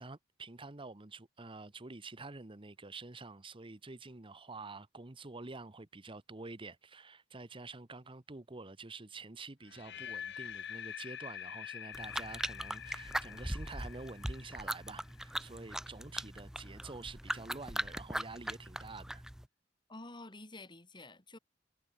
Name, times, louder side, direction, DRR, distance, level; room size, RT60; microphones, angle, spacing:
voice 1, 0.0-19.3, right 3 dB, 30° right, 1.1 m, -48 dB
sound 1, 9.7-15.7, left 8 dB, 65° left, 1.4 m, -46 dB
sound 2, 11.9-19.5, right 1 dB, 5° right, 0.4 m, -40 dB
voice 2, 19.9-21.4, left 2 dB, 25° left, 3.6 m, -49 dB
head